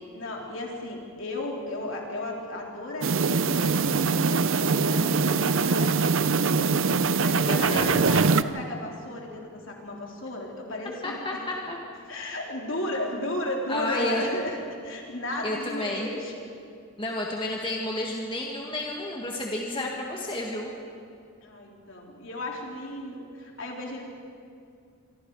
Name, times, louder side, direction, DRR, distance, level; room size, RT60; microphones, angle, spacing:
voice 1, 0.1-11.4 12.1-16.3 21.4-24.0, left 1 dB, 60° left, -1 dB, 3.8 m, -35 dB
sound 1, 3.0-8.4, right 4 dB, 60° right, 0.6 m, -23 dB
voice 2, 7.5-8.1 11.0-11.8 13.7-14.2 15.4-16.1 17.0-20.7, left 1 dB, 25° left, -1 dB, 1.9 m, -31 dB
26.0 x 24.5 x 4.9 m, 2.4 s
head